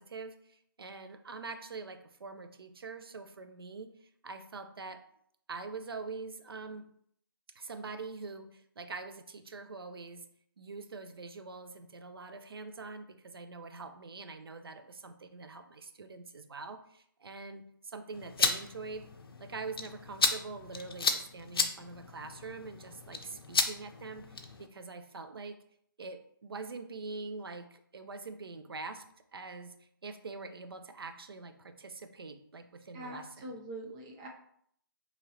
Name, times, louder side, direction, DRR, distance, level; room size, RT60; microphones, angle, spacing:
voice 1, 0.0-5.0 5.5-6.9 7.5-10.2 10.6-19.1 19.4-25.6 26.0-29.0 29.3-33.6, right 3 dB, 90° right, 8 dB, 0.5 m, -44 dB
sound 1, 18.1-24.7, left 4 dB, 85° left, 0.5 m, -34 dB
voice 2, 32.9-34.3, right 1 dB, 15° right, 1 dB, 0.4 m, -43 dB
3.9 x 2.9 x 2.8 m, 0.67 s
hypercardioid pair, 155°, 12 cm